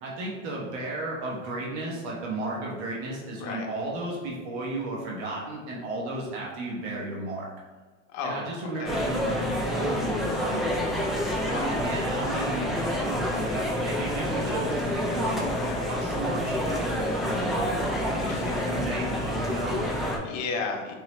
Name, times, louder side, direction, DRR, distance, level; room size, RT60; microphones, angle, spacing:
voice 1, 0.0-7.5 8.2-11.0 11.5-12.7 13.0-15.4 15.9-17.8 18.4-19.8, right 2 dB, 65° right, -3 dB, 1.2 m, -34 dB
voice 2, 8.1-9.0 11.4-11.7 15.5-15.9 18.2-18.7 19.8-20.9, left 4 dB, 45° left, 2 dB, 0.8 m, -35 dB
sound 1, 8.8-20.2, equal, ahead, 0.3 m, -28 dB
3.8 x 3.0 x 3.1 m, 1.3 s
hypercardioid pair, 105°, 38 cm